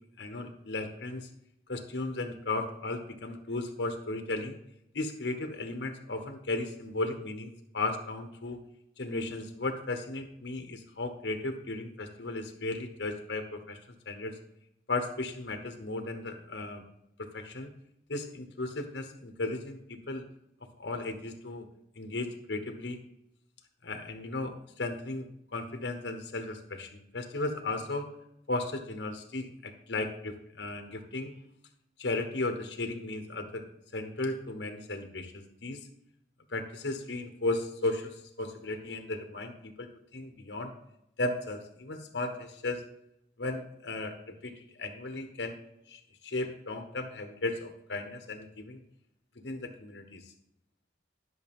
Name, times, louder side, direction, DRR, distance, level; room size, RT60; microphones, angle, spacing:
voice 1, 0.2-1.3 1.7-4.6 4.9-8.6 9.0-13.8 14.1-14.4 14.9-16.8 17.3-17.7 18.1-20.2 20.8-21.7 22.0-23.0 23.8-28.1 28.5-31.3 32.0-33.6 33.9-35.8 36.5-40.7 41.2-42.8 43.4-45.6 45.9-48.8 49.4-50.2, left 2 dB, 75° left, 6 dB, 1.1 m, -35 dB
11.0 x 6.3 x 3.6 m, 0.78 s
head